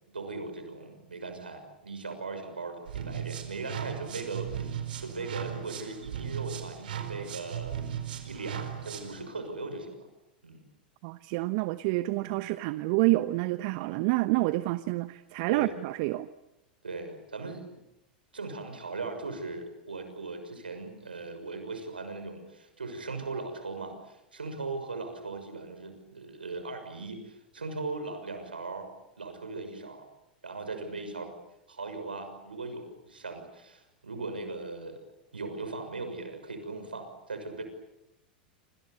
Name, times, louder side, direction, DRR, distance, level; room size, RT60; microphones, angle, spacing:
voice 1, 0.1-7.9 8.2-10.1 10.4-10.7 12.2-12.4 15.5-15.7 16.8-17.8 18.3-28.9 29.2-30.1 30.4-31.3 31.7-35.0 35.3-37.6, right 3 dB, 85° right, 7 dB, 6.4 m, -39 dB
sound 1, 2.8-9.2, right 9 dB, 70° right, 4.5 m, -37 dB
voice 2, 11.0-16.3, right 20 dB, 50° right, 13 dB, 0.9 m, -28 dB
28.0 x 27.5 x 7.0 m, 0.90 s
figure-of-eight pair, 90°, 5 cm